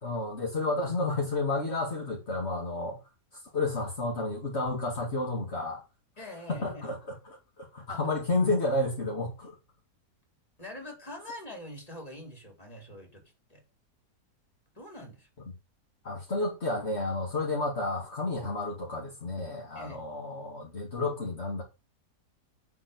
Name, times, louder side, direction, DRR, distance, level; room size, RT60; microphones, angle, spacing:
voice 1, 0.0-3.0 3.5-5.8 6.5-7.2 7.6-9.5 16.0-21.6, left 2 dB, 40° left, 2.7 m, -31 dB
voice 2, 6.2-6.8 7.9-8.0 10.6-13.2 13.5-13.6 14.7-15.3 19.7-20.0, left 1 dB, 20° left, 4.5 m, -44 dB
11.0 x 5.6 x 6.8 m
omnidirectional pair, 1.8 m